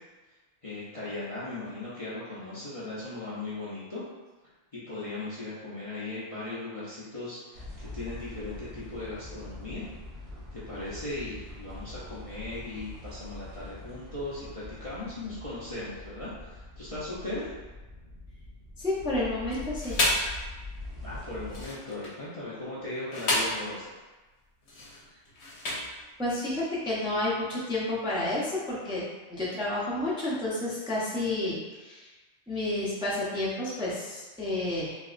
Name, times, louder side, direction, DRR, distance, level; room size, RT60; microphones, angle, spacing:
voice 1, 0.6-4.0 4.7-9.9 10.5-17.5 21.0-23.9, left 2 dB, 35° left, -10 dB, 0.6 m, -38 dB
sound 1, 7.5-21.7, left 2 dB, 60° right, 1.0 m, -43 dB
voice 2, 18.8-20.0 26.2-29.0 29.3-32.1 32.5-35.0, left 1 dB, 5° right, -8 dB, 0.5 m, -30 dB
sound 2, 19.5-20.4 21.4-22.2 22.9-23.7 24.6-26.0, left 1 dB, 65° left, 1.0 m, -30 dB
3.4 x 2.9 x 2.4 m, 1.2 s
omnidirectional pair, 1.2 m